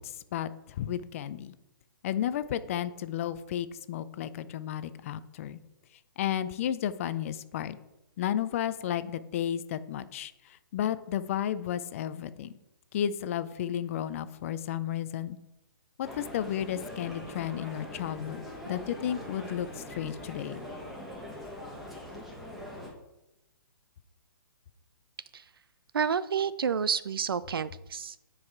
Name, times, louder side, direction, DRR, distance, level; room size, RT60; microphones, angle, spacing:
voice 1, 0.0-1.5 2.0-5.6 6.2-7.8 8.2-12.5 12.9-15.4 16.0-20.6, left 10 dB, 40° left, 14 dB, 0.4 m, -33 dB
sound 1, 16.0-22.9, left 1 dB, ahead, 1.4 m, -42 dB
voice 2, 25.9-28.2, right 7 dB, 80° right, 16 dB, 0.5 m, -29 dB
9.5 x 4.9 x 4.5 m, 0.92 s
hypercardioid pair, 145°, 12 cm